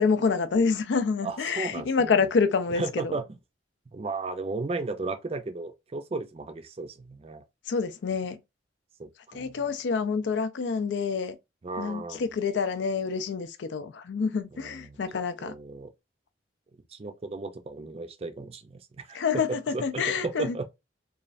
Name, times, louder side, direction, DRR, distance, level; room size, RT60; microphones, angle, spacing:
voice 1, 0.0-3.1 7.7-8.4 9.3-11.4 11.8-15.5 19.1-20.6, left 5 dB, 75° left, 0.4 m, -27 dB
voice 2, 1.2-2.3 2.7-3.4 3.9-7.4 9.0-9.6 11.6-12.2 14.5-15.0 15.4-15.9 16.9-20.6, right 3 dB, 35° right, 0.4 m, -35 dB
3.1 x 2.3 x 2.4 m
head